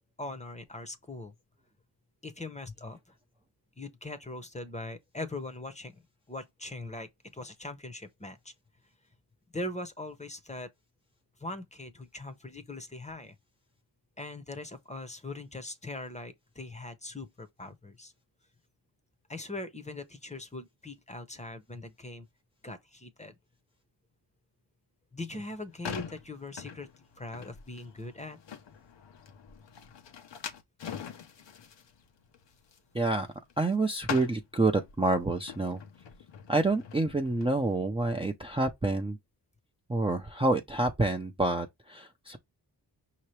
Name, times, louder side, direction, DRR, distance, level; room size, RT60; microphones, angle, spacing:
voice 1, 0.2-1.3 2.2-3.0 3.8-6.0 6.3-8.5 9.5-10.7 11.4-13.4 14.2-18.1 19.3-22.3 22.6-23.4 25.1-26.9 27.2-28.4, left 2 dB, 15° left, 0.7 m, -41 dB
sound 1, 25.4-33.7 34.0-37.7, left 7 dB, 80° left, 0.9 m, -43 dB
voice 2, 32.9-33.3 33.6-35.8 36.5-39.2 39.9-42.4, right 2 dB, 15° right, 0.5 m, -28 dB
5.7 x 2.9 x 3.1 m
wide cardioid pair, 105°, 42 cm